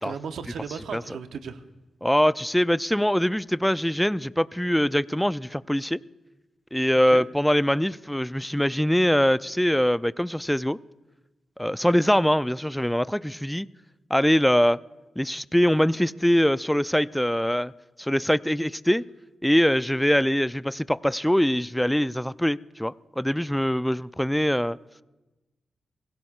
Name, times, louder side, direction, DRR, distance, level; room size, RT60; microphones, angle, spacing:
voice 1, 0.0-1.6 7.1-7.3, right 6 dB, 75° right, 0.8 m, -36 dB
voice 2, 2.0-6.0 6.7-10.8 11.6-13.7 14.1-14.8 15.2-17.7 18.0-19.0 19.4-24.8, equal, 5° left, 0.4 m, -23 dB
28.5 x 17.0 x 2.5 m
supercardioid pair, 40°, 0 cm